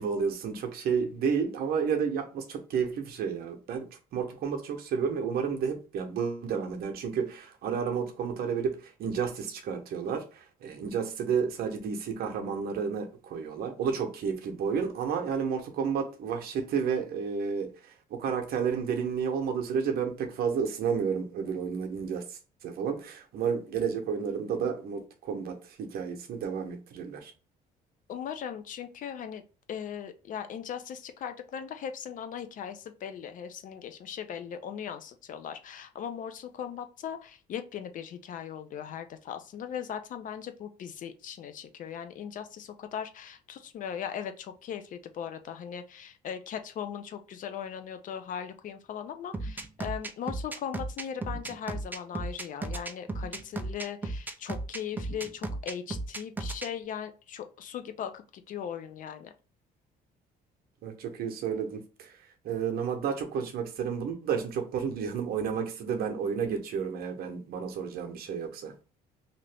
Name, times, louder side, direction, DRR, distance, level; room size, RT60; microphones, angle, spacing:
voice 1, 0.0-27.3 60.8-62.2 62.4-68.7, right 6 dB, 65° right, 0.8 m, -31 dB
voice 2, 28.1-29.4 29.7-59.3, left 8 dB, 50° left, 0.5 m, -39 dB
sound 1, 49.3-56.7, right 2 dB, 10° right, 0.4 m, -35 dB
2.8 x 2.6 x 3.3 m
cardioid pair, 110°, 17 cm